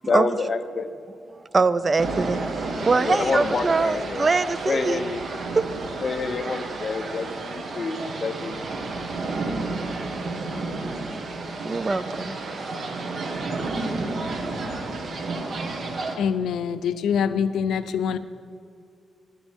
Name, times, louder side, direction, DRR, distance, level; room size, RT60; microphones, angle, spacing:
voice 1, 0.1-0.9 3.0-4.3 4.7-5.3 6.0-8.5, left 4 dB, 40° left, 0.8 m, -27 dB
voice 2, 1.5-2.4 2.9-5.0 5.5-5.6 11.6-12.3, right 4 dB, 30° right, 0.4 m, -22 dB
sound 1, 2.0-16.2, right 3 dB, 55° right, 1.5 m, -31 dB
voice 3, 16.2-18.2, left 7 dB, 85° left, 0.6 m, -24 dB
23.0 x 9.2 x 3.6 m
cardioid pair, 120°, 0 cm